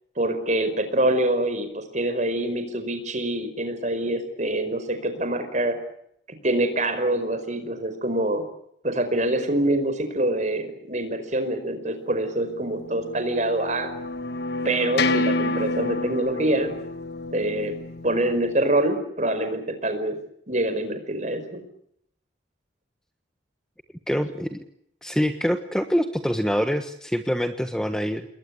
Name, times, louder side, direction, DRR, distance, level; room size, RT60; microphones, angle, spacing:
voice 1, 0.2-5.8 6.4-8.4 8.8-13.9 14.7-16.7 17.3-17.7 18.0-20.2 20.5-21.6, right 1 dB, 35° right, 8 dB, 5.1 m, -25 dB
sound 1, 12.7-18.7, left 2 dB, 55° left, 1.5 m, -29 dB
voice 2, 24.1-24.6 25.0-28.3, equal, 5° left, 7 dB, 1.2 m, -25 dB
28.5 x 21.5 x 8.4 m, 0.72 s
head